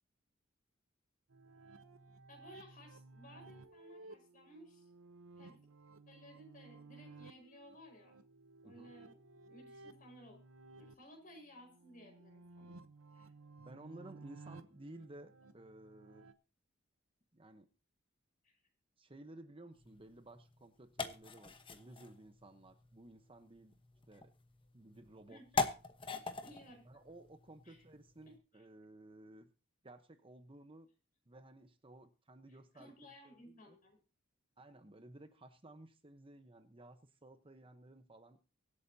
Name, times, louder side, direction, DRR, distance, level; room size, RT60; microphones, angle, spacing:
sound 1, 1.3-16.3, right 3 dB, 85° right, 0.9 m, -57 dB
voice 1, 2.3-4.9 5.4-5.6 6.1-8.2 8.6-9.2 9.5-10.4 10.8-12.8 13.1-13.3 18.4-18.6 25.3-25.6 26.4-27.0 27.6-27.8 28.3-28.4 32.7-34.0, equal, 45° left, 3 dB, 5.1 m, -58 dB
voice 2, 13.6-16.3 17.3-17.7 19.0-23.8 24.1-24.3 24.7-25.4 26.8-29.5 29.8-30.9 31.3-32.9 33.2-33.8 34.6-38.4, right 1 dB, 25° right, 8 dB, 1.0 m, -56 dB
sound 2, 19.7-28.4, left 4 dB, 25° left, 1.1 m, -43 dB
24.0 x 8.4 x 2.8 m, 0.33 s
head